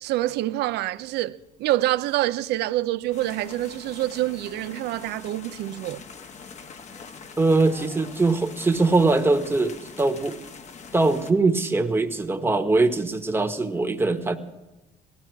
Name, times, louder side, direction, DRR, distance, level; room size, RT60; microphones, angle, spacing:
voice 1, 0.0-6.0, right 15 dB, 80° right, 0.6 m, -26 dB
sound 1, 3.1-11.3, left 5 dB, 45° left, 1.1 m, -43 dB
voice 2, 7.4-10.4 10.9-14.4, right 3 dB, 15° right, 1.3 m, -22 dB
18.0 x 14.0 x 4.6 m
cardioid pair, 110°, 17 cm